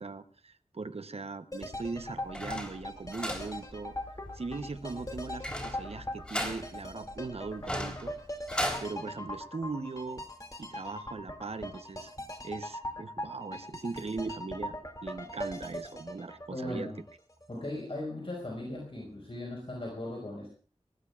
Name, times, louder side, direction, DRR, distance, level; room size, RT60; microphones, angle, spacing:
voice 1, 0.0-3.9 4.3-8.1 8.8-10.2 10.6-12.1 12.4-14.7 15.0-16.9, right 3 dB, 60° right, 11 dB, 0.8 m, -39 dB
sound 1, 1.5-17.5 17.7-17.8, left 1 dB, 30° left, 2.4 m, -41 dB
sound 2, 1.8-8.8, equal, 10° left, 3.7 m, -38 dB
voice 2, 16.5-17.0 17.5-20.5, left 1 dB, 55° left, -1 dB, 4.9 m, -38 dB
23.0 x 18.0 x 2.4 m, 0.40 s
wide cardioid pair, 65°, 12 cm